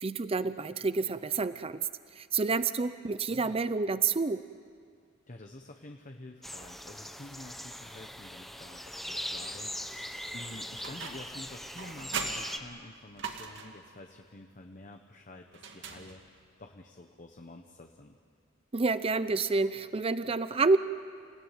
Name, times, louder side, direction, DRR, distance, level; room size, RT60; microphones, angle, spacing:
voice 1, 0.0-1.9 2.2-4.4 18.7-20.8, right 4 dB, 30° right, 13 dB, 0.5 m, -28 dB
voice 2, 3.3-3.6 5.3-16.2 16.6-18.2, left 2 dB, 40° left, 4 dB, 1.2 m, -49 dB
sound 1, 6.4-12.6, equal, ahead, 0.9 m, -40 dB
sound 2, 10.8-11.4 11.8-13.9 15.5-16.5, right 5 dB, 60° right, 2.1 m, -40 dB
29.0 x 17.0 x 9.3 m, 2.1 s
head